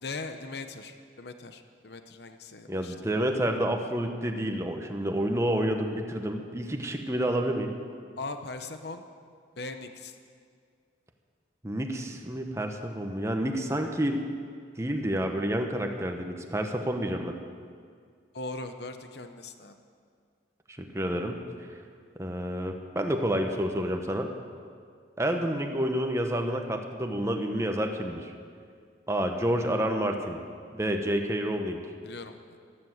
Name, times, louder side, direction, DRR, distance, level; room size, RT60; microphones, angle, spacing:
voice 1, 0.0-3.1 8.2-9.0 9.6-10.2 18.3-19.8 32.0-32.6, left 3 dB, 65° left, 8 dB, 0.9 m, -40 dB
voice 2, 2.7-7.7 11.6-14.3 14.8-17.3 20.7-21.4 22.2-24.3 25.2-28.3 29.1-30.4 30.7-31.8, right 1 dB, 15° right, 4 dB, 1.1 m, -29 dB
13.0 x 12.0 x 8.0 m, 2.1 s
head